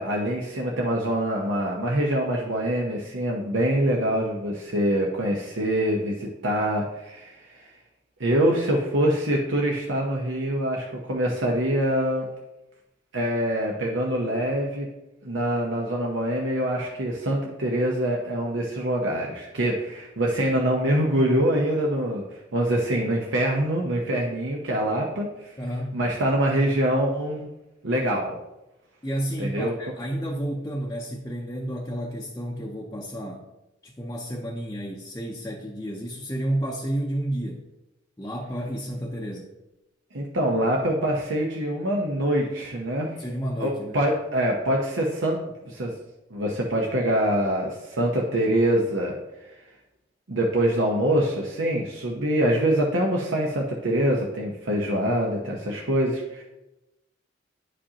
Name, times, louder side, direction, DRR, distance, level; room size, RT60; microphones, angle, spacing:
voice 1, 0.0-7.7 8.2-12.3 13.1-14.9 15.2-25.5 25.9-27.5 27.8-28.4 29.4-29.7 40.1-43.2 43.6-45.4 45.6-45.9 46.3-49.6 50.3-56.4, right 1 dB, 85° right, -1 dB, 0.9 m, -25 dB
voice 2, 25.6-26.0 29.0-33.5 33.8-37.6 38.2-39.5 43.2-44.0, right 1 dB, 15° left, -1 dB, 0.6 m, -31 dB
9.9 x 5.2 x 2.8 m, 0.97 s
head